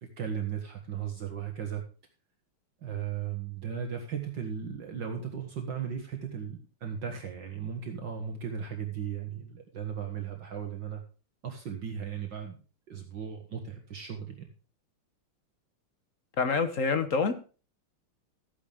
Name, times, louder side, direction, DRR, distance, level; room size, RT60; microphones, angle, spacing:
voice 1, 0.0-1.8 2.8-11.0 11.4-12.6 12.9-14.5, right 8 dB, 60° right, 3 dB, 2.2 m, -36 dB
voice 2, 16.4-17.3, left 4 dB, 45° left, 9 dB, 1.2 m, -26 dB
14.0 x 9.7 x 3.5 m, 0.35 s
omnidirectional pair, 2.3 m